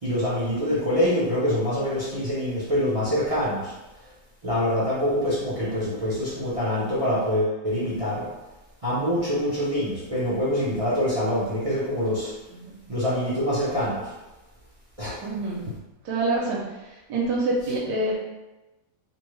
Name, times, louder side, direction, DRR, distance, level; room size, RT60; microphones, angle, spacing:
voice 1, 0.0-3.7 4.4-8.3 8.8-12.3 12.9-14.1 15.0-15.3, equal, 40° right, -9 dB, 0.4 m, -25 dB
voice 2, 15.2-15.7 16.0-18.2, right 2 dB, 85° right, -4 dB, 1.2 m, -27 dB
2.6 x 2.6 x 3.1 m, 1.1 s
omnidirectional pair, 1.8 m